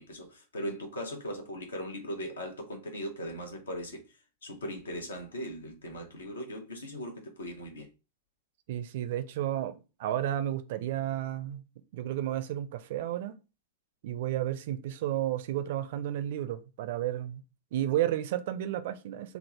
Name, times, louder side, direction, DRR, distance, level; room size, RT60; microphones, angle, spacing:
voice 1, 0.0-4.0 4.4-7.9, equal, 70° left, 0.9 m, -39 dB
voice 2, 8.7-11.6 11.9-13.3 14.0-17.4 17.7-19.4, right 12 dB, 55° right, 0.4 m, -32 dB
3.4 x 2.0 x 4.1 m
figure-of-eight pair, 90°, 0 cm